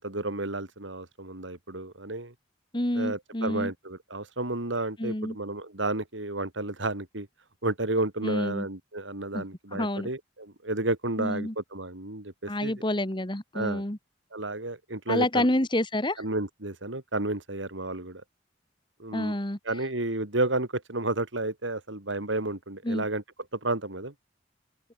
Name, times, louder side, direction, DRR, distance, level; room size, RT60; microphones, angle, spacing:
voice 1, 0.0-2.3 2.9-7.3 7.6-12.7 13.5-13.8 14.3-15.5 16.2-18.2 19.0-19.4 19.7-23.2 23.5-24.1, right 2 dB, 80° right, 3.7 m, -31 dB
voice 2, 2.7-3.7 5.0-5.4 8.2-8.7 9.3-9.4 9.7-10.1 11.2-11.5 12.5-14.0 15.1-16.2 19.1-19.6 22.8-23.1, left 1 dB, 25° left, 2.2 m, -28 dB
open air
head